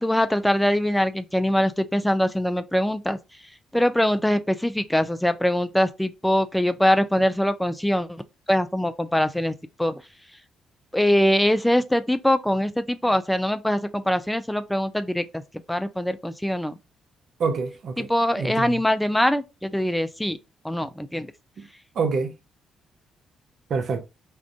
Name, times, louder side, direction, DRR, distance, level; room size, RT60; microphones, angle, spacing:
voice 1, 0.0-3.2 3.7-8.1 8.5-9.5 9.8-9.9 10.9-15.4 15.7-16.7 18.0-20.4 20.6-21.3, left 1 dB, 5° left, 0.3 m, -23 dB
voice 2, 17.4-18.1 18.4-18.8 22.0-22.3 23.7-24.0, right 4 dB, 55° right, 0.5 m, -26 dB
2.4 x 2.3 x 3.4 m
figure-of-eight pair, 40°, 0 cm